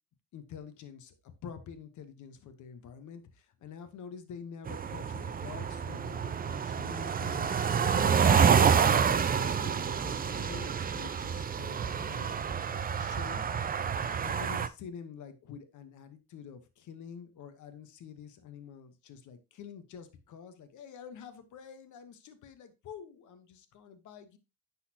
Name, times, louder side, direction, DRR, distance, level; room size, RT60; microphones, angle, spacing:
voice 1, 0.3-1.1 1.4-12.3 12.7-13.4 14.2-24.4, left 7 dB, 75° left, 1.1 m, -47 dB
sound 1, 4.7-14.7, right 7 dB, 30° right, 0.5 m, -28 dB
9.8 x 4.2 x 2.8 m
cardioid pair, 90°, 30 cm